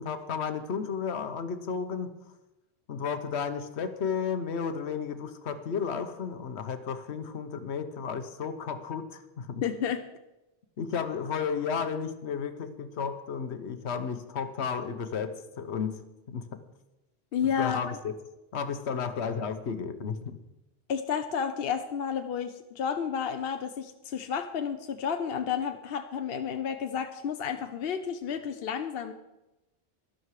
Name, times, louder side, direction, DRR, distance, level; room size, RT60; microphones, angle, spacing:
voice 1, 0.0-2.1 2.9-9.6 10.8-16.0 16.3-16.6 17.6-18.1 18.5-20.4, left 6 dB, 85° left, 9 dB, 1.2 m, -33 dB
voice 2, 9.6-10.0 17.3-17.8 20.9-29.1, left 7 dB, 65° left, 7 dB, 0.9 m, -31 dB
12.5 x 11.5 x 4.8 m, 0.97 s
omnidirectional pair, 1.1 m